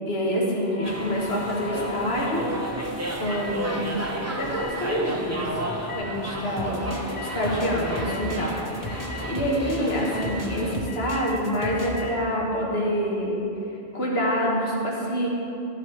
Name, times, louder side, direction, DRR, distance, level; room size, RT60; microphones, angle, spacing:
voice 1, 0.1-2.4 3.2-4.1 4.4-5.5 5.9-6.8 7.3-13.4 13.9-15.3, equal, 70° left, -3 dB, 1.8 m, -26 dB
sound 1, 0.7-2.5 3.2-3.5 4.5-4.7 5.9-6.0 7.1-7.4 7.8-8.3 8.8-9.3 9.9-10.3 10.9-11.3 11.7-12.1, left 5 dB, 55° left, 1.0 m, -39 dB
sound 2, 0.8-10.8, right 1 dB, 15° right, 0.8 m, -32 dB
sound 3, 6.6-12.0, left 1 dB, 20° left, 0.8 m, -36 dB
12.5 x 7.5 x 3.3 m, 2.9 s
omnidirectional pair, 1.1 m